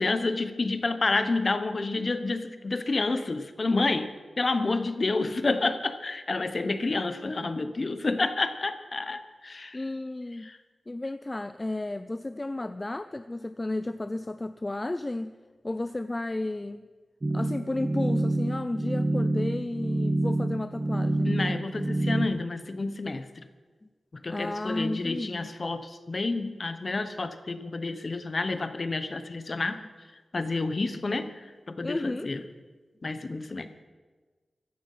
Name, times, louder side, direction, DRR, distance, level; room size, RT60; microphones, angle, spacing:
voice 1, 0.0-4.1 4.4-9.8 10.5-10.6 21.2-23.4 24.1-29.8 30.3-32.4 33.0-33.7, left 3 dB, 40° left, 10 dB, 0.9 m, -29 dB
voice 2, 9.7-10.5 10.9-15.3 15.6-16.9 17.3-21.4 24.3-25.5 31.8-32.3, left 2 dB, 25° left, 10 dB, 0.4 m, -33 dB
sound 1, 17.2-22.3, right 1 dB, 30° right, 1.3 m, -27 dB
15.5 x 11.5 x 5.6 m, 1.4 s
wide cardioid pair, 110°, 0 cm